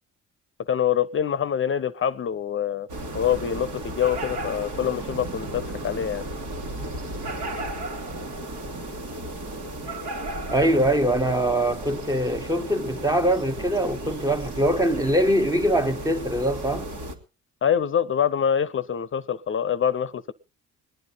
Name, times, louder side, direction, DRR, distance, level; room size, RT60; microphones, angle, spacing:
voice 1, 0.7-2.9 3.1-6.3 17.6-20.3, left 8 dB, 40° left, 0.6 m, -25 dB
sound 1, 2.9-17.1, right 1 dB, 85° right, 2.3 m, -34 dB
voice 2, 10.5-16.9, right 1 dB, 10° right, 0.8 m, -23 dB
22.0 x 9.8 x 3.9 m
cardioid pair, 90°, 30 cm